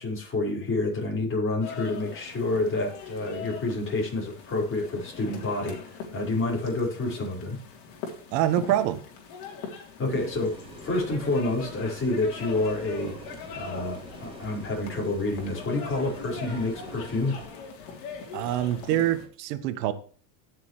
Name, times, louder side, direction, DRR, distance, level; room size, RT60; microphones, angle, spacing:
voice 1, 0.0-7.6 10.0-13.3 13.5-17.4, left 2 dB, 25° left, 5.4 m, -28 dB
sound 1, 1.6-19.3, left 6 dB, 65° left, 3.4 m, -41 dB
voice 2, 8.3-9.0 18.3-19.9, right 12 dB, 70° right, 1.4 m, -25 dB
sound 2, 10.2-17.5, right 1 dB, 10° right, 3.0 m, -46 dB
16.0 x 6.8 x 3.2 m
supercardioid pair, 125°, 49 cm